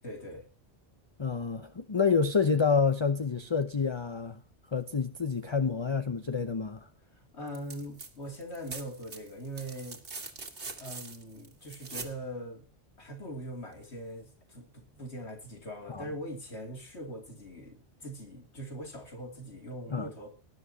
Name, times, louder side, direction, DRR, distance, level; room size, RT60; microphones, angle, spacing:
voice 1, 0.0-0.4 7.3-10.0 10.8-12.6 13.0-20.3, equal, 80° left, 3.2 m, -41 dB
voice 2, 1.2-4.4 4.7-6.9 15.9-16.1 19.9-20.1, left 5 dB, 30° left, 0.7 m, -28 dB
sound 1, 7.5-8.1 8.4-12.2 13.8-13.9, right 4 dB, 90° right, 2.2 m, -43 dB
19.5 x 11.0 x 2.9 m
omnidirectional pair, 1.1 m